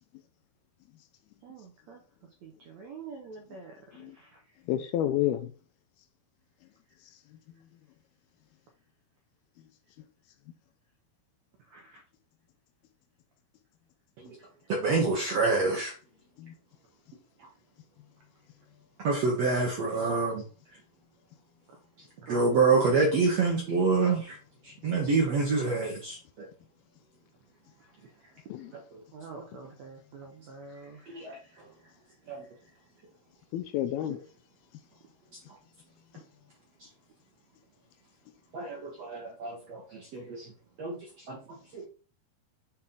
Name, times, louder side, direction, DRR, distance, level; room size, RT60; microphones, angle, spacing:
voice 1, 1.4-2.0 2.4-4.4 11.7-12.0 21.7-21.8 22.2-22.6 29.1-31.6, right 4 dB, 85° right, 1.6 m, -47 dB
voice 2, 4.7-5.5 16.4-16.5 28.5-28.7 33.5-34.2, left 12 dB, 80° left, 2.4 m, -29 dB
voice 3, 14.7-15.9 19.0-20.4 22.3-24.4 24.6-26.5 31.1-31.4 32.3-32.4 38.5-40.5 40.8-41.0 41.3-41.4 41.7-41.9, right 4 dB, 70° right, 1.6 m, -27 dB
7.3 x 4.4 x 3.8 m
omnidirectional pair, 4.7 m